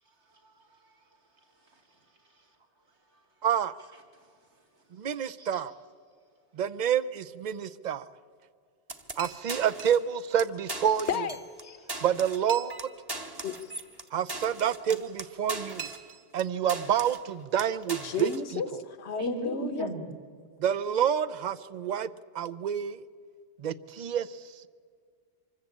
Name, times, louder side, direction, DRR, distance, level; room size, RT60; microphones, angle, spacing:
voice 1, 0.2-2.3 3.1-3.2 3.9-4.3 4.8-4.9 5.4-5.6 19.2-20.1, right 4 dB, 75° right, 2 dB, 2.7 m, -42 dB
voice 2, 3.4-3.7 5.0-5.7 6.6-8.0 9.2-11.1 12.0-12.9 14.1-15.9 16.3-18.6 20.6-22.1 22.3-23.0 23.6-24.3, right 9 dB, 50° right, 15 dB, 0.6 m, -28 dB
sound 1, 8.9-10.1 10.4-10.5 10.7-11.6 11.9-16.4 16.7-17.3 17.6-18.4, right 2 dB, 20° right, 1.1 m, -39 dB
voice 3, 11.1-11.8 13.4-13.7 18.0-19.9, left 6 dB, 70° left, 13 dB, 1.3 m, -33 dB
25.0 x 14.5 x 8.5 m, 2.1 s
omnidirectional pair, 1.2 m